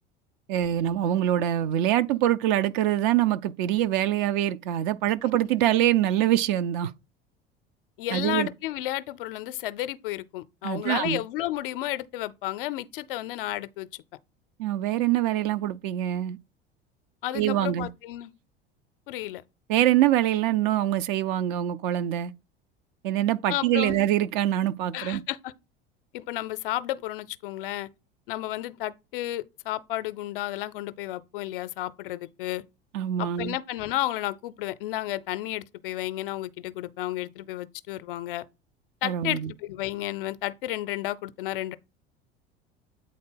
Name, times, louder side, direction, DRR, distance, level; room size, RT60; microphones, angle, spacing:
voice 1, 0.5-6.9 8.1-8.5 10.6-11.2 14.6-16.4 17.3-17.9 19.7-22.3 23.0-25.2 32.9-33.6 39.0-39.5, right 12 dB, 55° right, 0.6 m, -24 dB
voice 2, 8.0-13.9 17.2-18.3 19.1-19.4 23.5-24.0 24.9-25.5 26.1-27.9 28.3-32.6 33.2-38.4 39.0-41.8, left 15 dB, 60° left, 0.6 m, -32 dB
8.6 x 3.9 x 3.8 m
figure-of-eight pair, 70°, 30 cm